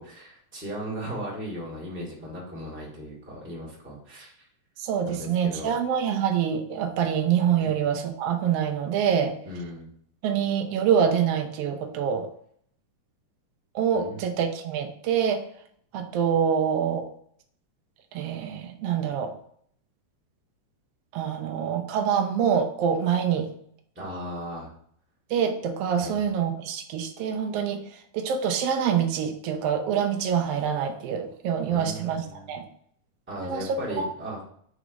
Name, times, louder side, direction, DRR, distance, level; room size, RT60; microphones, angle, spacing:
voice 1, 0.0-4.3 5.1-5.7 7.6-7.7 9.4-9.9 13.9-14.2 23.9-24.7 26.0-26.1 31.7-32.5 33.3-34.4, equal, 5° right, -5 dB, 1.2 m, -37 dB
voice 2, 4.8-9.4 10.2-12.3 13.7-15.4 15.9-17.1 18.1-19.3 21.1-23.5 25.3-32.6 33.4-34.1, right 8 dB, 85° right, 4 dB, 1.3 m, -26 dB
4.8 x 4.0 x 5.1 m, 0.63 s
omnidirectional pair, 3.7 m